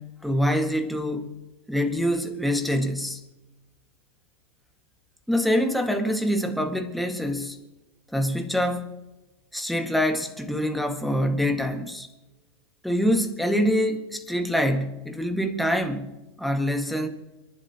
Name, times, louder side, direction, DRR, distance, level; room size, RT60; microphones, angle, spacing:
voice 1, 0.0-1.3 1.7-3.2 5.3-7.6 8.1-9.0 9.5-12.1 12.8-16.1 16.4-17.1, equal, ahead, 1.7 m, -25 dB
28.5 x 11.5 x 2.9 m
hypercardioid pair, 110°, 14 cm